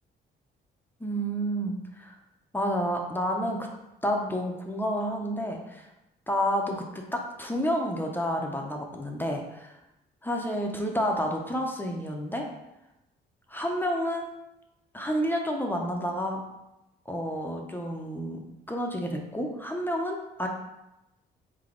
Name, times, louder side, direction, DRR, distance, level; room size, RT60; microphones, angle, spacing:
voice 1, 1.0-2.2 2.5-3.7 4.0-5.9 6.3-9.7 10.2-12.4 13.5-14.3 14.9-16.4 17.1-20.5, equal, 10° left, 1 dB, 0.7 m, -30 dB
3.6 x 3.4 x 3.8 m, 0.92 s
cardioid pair, 90°, 20 cm